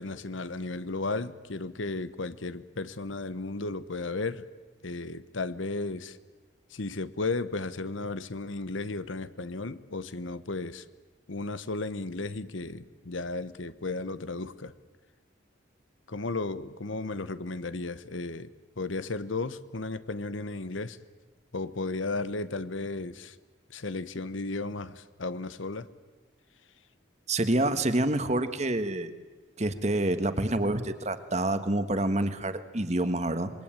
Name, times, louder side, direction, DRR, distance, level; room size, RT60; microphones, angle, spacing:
voice 1, 0.0-4.4 4.8-6.2 6.7-10.8 11.3-14.7 16.1-21.0 21.5-23.3 23.7-25.9, left 3 dB, 80° left, 15 dB, 1.1 m, -34 dB
voice 2, 27.3-29.1 29.6-33.5, right 1 dB, 35° right, 10 dB, 1.5 m, -27 dB
26.5 x 22.0 x 9.0 m, 1.3 s
head